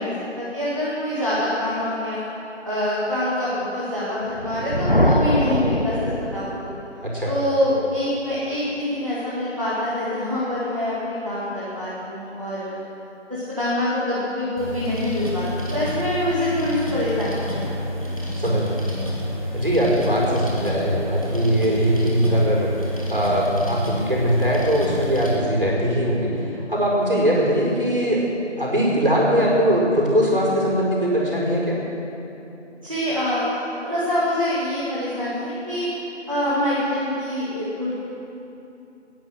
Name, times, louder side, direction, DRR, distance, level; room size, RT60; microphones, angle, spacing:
voice 1, 0.0-2.2 2.6-6.7 7.3-12.8 13.3-17.7 32.8-35.9 36.3-37.9, left 1 dB, 25° right, -10 dB, 2.2 m, -25 dB
Thunder, 4.3-6.9, equal, 50° left, 0.4 m, -22 dB
sound 1, 14.6-25.4, equal, 30° left, 1.9 m, -29 dB
voice 2, 18.3-18.8 19.5-22.7 23.1-28.2 28.6-31.8, equal, 50° right, -3 dB, 4.9 m, -21 dB
20.0 x 10.5 x 6.5 m, 2.9 s
figure-of-eight pair, 175°, 36 cm